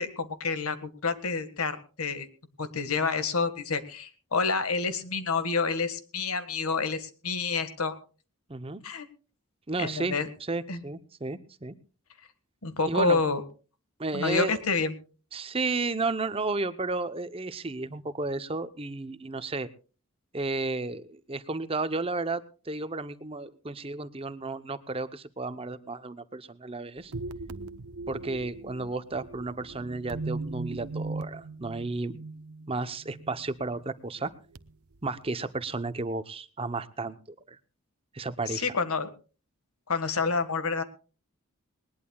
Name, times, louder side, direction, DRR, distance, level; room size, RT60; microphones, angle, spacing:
voice 1, 0.0-2.3 2.6-8.0 8.8-9.1 9.8-10.3 10.7-10.8 12.6-13.4 14.1-14.9 38.5-39.1 39.9-40.8, left 4 dB, 80° left, 11 dB, 1.7 m, -28 dB
voice 2, 8.5-8.8 9.7-10.2 10.5-11.8 12.9-13.2 14.0-14.6 15.3-19.7 20.3-27.1 28.1-32.2 32.7-34.3 35.0-37.2 37.5-37.6 38.1-38.7, right 3 dB, 25° right, 12 dB, 0.8 m, -33 dB
sound 1, 27.0-33.8 34.2-34.7 35.3-35.4, right 3 dB, 85° right, 0.9 m, -39 dB
20.0 x 20.0 x 2.3 m, 0.36 s
head